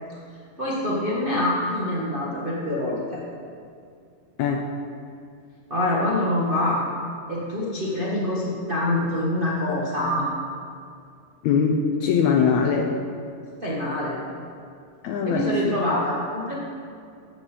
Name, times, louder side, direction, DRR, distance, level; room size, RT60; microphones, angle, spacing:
voice 1, 0.6-3.2 5.7-6.8 7.3-10.3 13.6-14.2 15.2-16.5, left 1 dB, 60° right, -6 dB, 0.5 m, -25 dB
voice 2, 4.4-4.7 11.4-13.0 15.0-15.7, left 6 dB, 75° left, 1 dB, 1.7 m, -22 dB
12.5 x 8.1 x 5.0 m, 2.4 s
omnidirectional pair, 3.9 m